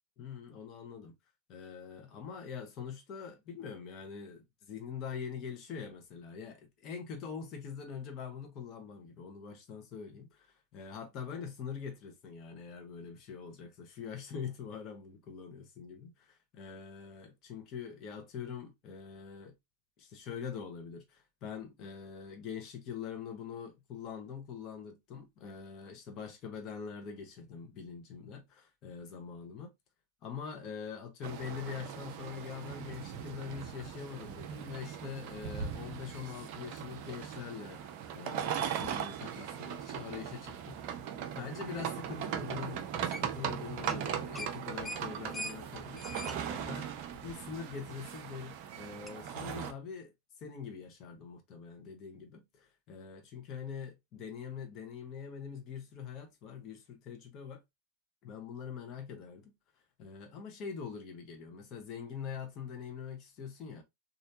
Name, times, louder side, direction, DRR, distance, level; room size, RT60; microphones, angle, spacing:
voice 1, 0.2-1.1 1.5-19.5 20.0-29.7 30.2-41.0 41.3-50.1 50.4-57.6 58.2-59.5 60.0-63.8, left 6 dB, 35° left, 1.0 m, -44 dB
sound 1, 31.2-49.7, right 8 dB, 45° right, 0.5 m, -39 dB
sound 2, 43.1-43.5 43.8-44.0 44.3-47.7 48.1-48.2 49.1-49.2, left 1 dB, 5° left, 0.4 m, -43 dB
3.2 x 2.6 x 2.7 m
figure-of-eight pair, 90°, 0 cm